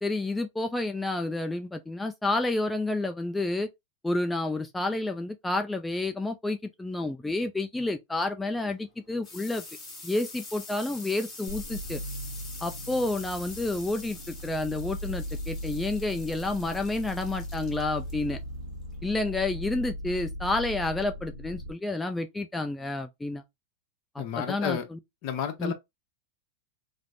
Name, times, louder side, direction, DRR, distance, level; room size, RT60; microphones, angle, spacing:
voice 1, 0.0-3.7 4.0-9.6 10.0-12.0 12.6-18.4 19.0-23.4 24.1-25.0 25.6-25.7, left 2 dB, 10° left, 0.3 m, -30 dB
sound 1, 8.5-19.8, left 3 dB, 25° left, 1.1 m, -46 dB
sound 2, 11.5-21.7, equal, 90° right, 0.5 m, -38 dB
voice 2, 24.2-24.9 25.2-25.7, left 8 dB, 55° left, 0.8 m, -31 dB
3.1 x 2.0 x 2.5 m
hypercardioid pair, 115°, 0 cm